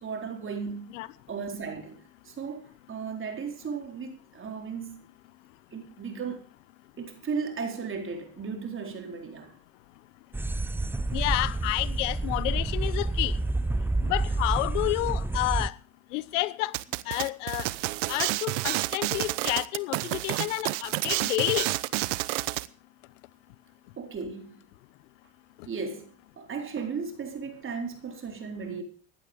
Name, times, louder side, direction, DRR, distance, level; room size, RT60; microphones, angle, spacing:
voice 1, 0.0-0.9 1.3-2.0 2.3-5.0 5.7-6.4 7.0-9.5 24.0-24.6 25.7-28.8, right 5 dB, 35° right, 4.3 m, -35 dB
sound 1, 10.3-15.7, right 2 dB, 5° right, 0.6 m, -28 dB
voice 2, 11.1-13.3 14.0-15.7 16.1-16.8 17.1-17.6 18.1-21.7, left 19 dB, 90° left, 0.9 m, -29 dB
sound 2, 16.7-22.7, right 20 dB, 85° right, 0.8 m, -29 dB
16.0 x 11.5 x 5.3 m
supercardioid pair, 105°, 36 cm